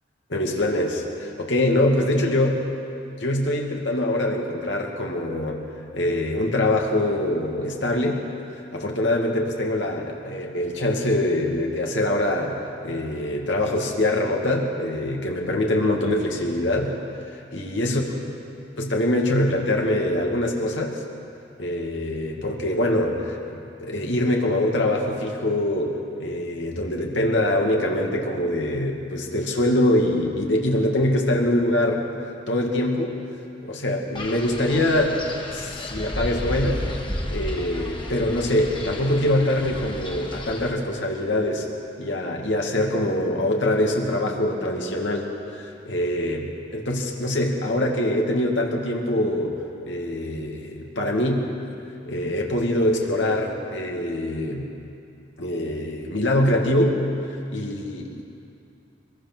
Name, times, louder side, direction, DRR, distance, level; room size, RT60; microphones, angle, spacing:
voice 1, 0.3-2.6 3.2-5.6 5.9-8.3 8.7-12.5 12.8-17.0 17.2-18.0 18.8-21.0 21.6-32.0 32.5-33.2 33.6-35.2 35.5-36.9 37.3-41.7 42.0-49.5 49.9-51.5 52.1-54.7 55.4-57.0 57.5-58.2, left 1 dB, 80° left, 0 dB, 2.4 m, -24 dB
Wind, 34.1-40.7, left 1 dB, 25° left, 1.9 m, -32 dB
24.0 x 21.5 x 6.2 m, 2.6 s
head